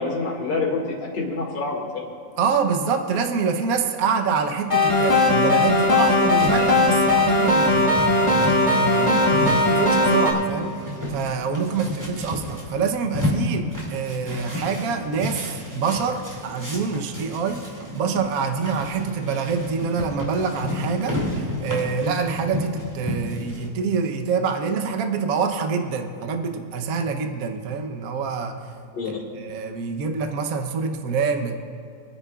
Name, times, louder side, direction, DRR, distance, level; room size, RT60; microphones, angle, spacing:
voice 1, 0.0-2.1 8.9-9.4 28.9-29.1, left 3 dB, 70° left, -1 dB, 2.7 m, -27 dB
voice 2, 2.4-28.6 29.3-31.5, right 5 dB, 55° right, 5 dB, 1.2 m, -26 dB
sound 1, 4.7-10.3, left 2 dB, 15° left, 1.6 m, -18 dB
sound 2, 6.1-23.7, left 1 dB, 10° right, 2.2 m, -32 dB
27.0 x 9.7 x 2.4 m, 2.6 s
omnidirectional pair, 2.0 m